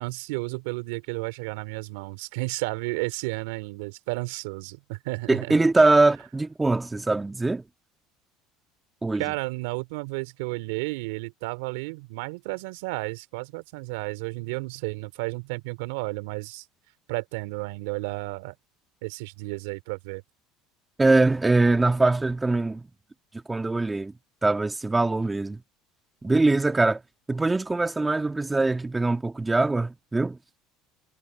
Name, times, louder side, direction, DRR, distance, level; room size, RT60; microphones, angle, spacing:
voice 1, 0.0-5.8 9.2-16.6 17.1-18.5 19.0-20.2, right 25 dB, 75° right, 3.0 m, -32 dB
voice 2, 5.3-7.6 9.0-9.2 21.0-22.8 23.5-24.1 24.4-25.6 26.2-27.0 27.3-30.4, right 2 dB, 15° right, 1.8 m, -22 dB
hypercardioid pair, 85°, 0 cm